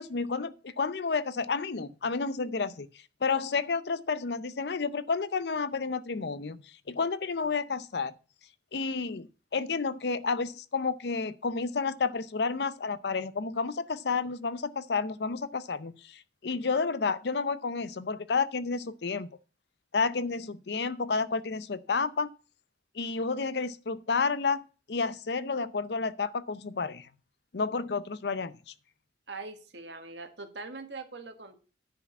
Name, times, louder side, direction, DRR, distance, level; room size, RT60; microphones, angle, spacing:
voice 1, 0.0-2.9 3.2-6.6 6.9-8.1 8.7-19.3 19.9-22.3 22.9-24.6 24.9-27.1 27.5-28.7, left 4 dB, 70° left, 0.6 m, -30 dB
voice 2, 29.3-31.6, right 3 dB, 80° right, 1.6 m, -42 dB
10.0 x 4.8 x 7.2 m
head